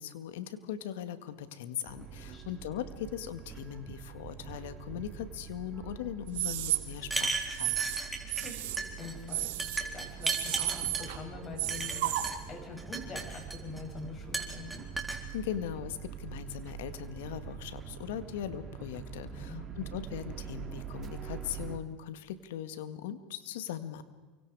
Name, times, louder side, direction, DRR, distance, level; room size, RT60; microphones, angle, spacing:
voice 1, 0.0-7.8 15.3-24.0, left 10 dB, 80° left, 11 dB, 2.0 m, -39 dB
sound 1, 1.9-21.8, right 8 dB, 30° right, 3.0 m, -45 dB
sound 2, 6.3-6.8 7.5-8.0 8.3-8.8 9.3-9.8 10.2-11.2 11.6-12.3, right 15 dB, 80° right, 2.4 m, -32 dB
sound 3, 7.0-8.5 8.8-9.1 9.6-11.1 11.7-12.4 12.8-13.8 14.3-15.2, right 3 dB, 10° right, 4.1 m, -35 dB
voice 2, 8.1-14.9 19.3-19.6, left 4 dB, 35° left, 2 dB, 7.8 m, -45 dB
29.0 x 24.5 x 5.0 m, 1.4 s
supercardioid pair, 105°, 0 cm